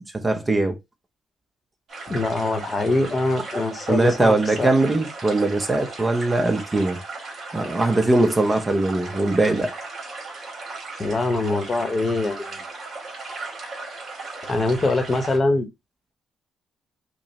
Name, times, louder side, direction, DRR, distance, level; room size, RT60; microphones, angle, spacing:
voice 1, 0.1-0.8 3.9-7.0 7.5-9.7, right 2 dB, 20° right, 0.6 m, -21 dB
sound 1, 1.9-15.4, right 3 dB, 50° right, 2.0 m, -37 dB
voice 2, 2.1-4.7 11.0-12.6 14.4-15.7, left 2 dB, 30° left, 0.9 m, -23 dB
5.2 x 2.0 x 2.8 m
cardioid pair, 90°, 0 cm